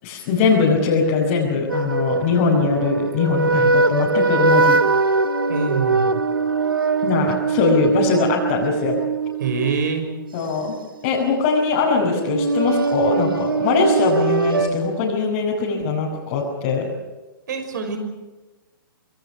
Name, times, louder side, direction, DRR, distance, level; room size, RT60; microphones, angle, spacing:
voice 1, 0.0-4.8 7.0-9.0 10.3-10.8 11.0-16.9, left 4 dB, 40° left, -5 dB, 5.6 m, -21 dB
sound 1, 1.7-10.7 12.2-14.7, right 4 dB, 75° right, 1.6 m, -21 dB
voice 2, 5.5-6.2 9.4-10.0 17.5-18.0, right 5 dB, 55° right, 6 dB, 6.0 m, -25 dB
26.0 x 22.0 x 6.4 m, 1.2 s
figure-of-eight pair, 115°, 12 cm